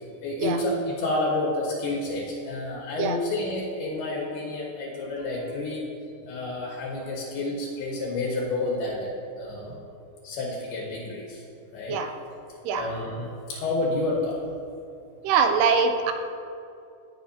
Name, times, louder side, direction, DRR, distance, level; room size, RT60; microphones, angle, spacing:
voice 1, 0.2-5.8 6.3-9.9 10.2-11.4 11.7-12.0 12.7-14.4, left 2 dB, 70° left, -3 dB, 3.2 m, -29 dB
voice 2, 15.2-16.1, right 5 dB, 80° right, 6 dB, 2.6 m, -23 dB
18.5 x 7.4 x 2.8 m, 2.6 s
omnidirectional pair, 5.0 m